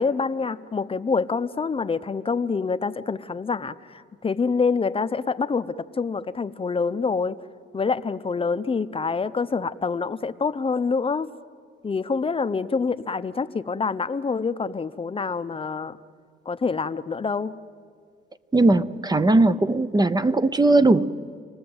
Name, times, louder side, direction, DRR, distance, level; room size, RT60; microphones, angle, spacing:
voice 1, 0.0-7.4 7.7-11.3 11.8-16.0 16.5-17.6, left 4 dB, 30° left, 13 dB, 0.7 m, -26 dB
voice 2, 18.5-21.1, right 2 dB, 20° right, 13 dB, 0.7 m, -19 dB
29.0 x 19.5 x 7.9 m, 2.1 s
cardioid pair, 90°, 20 cm